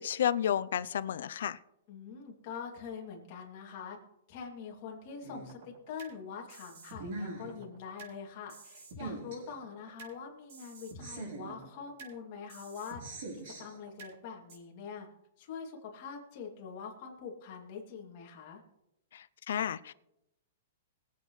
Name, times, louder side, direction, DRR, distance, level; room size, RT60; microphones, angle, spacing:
voice 1, 0.0-1.6 19.1-19.9, left 9 dB, 65° left, 15 dB, 0.5 m, -32 dB
voice 2, 1.9-4.0 4.3-13.0 13.3-15.1 15.4-18.6, left 6 dB, 35° left, 0 dB, 2.6 m, -44 dB
sound 1, 5.2-6.1 6.5-8.1 8.5-10.1 10.5-12.1 12.5-14.1 14.5-14.6, right 3 dB, 50° right, 5.8 m, -44 dB
23.5 x 8.3 x 3.2 m, 0.87 s
hypercardioid pair, 170°, 0 cm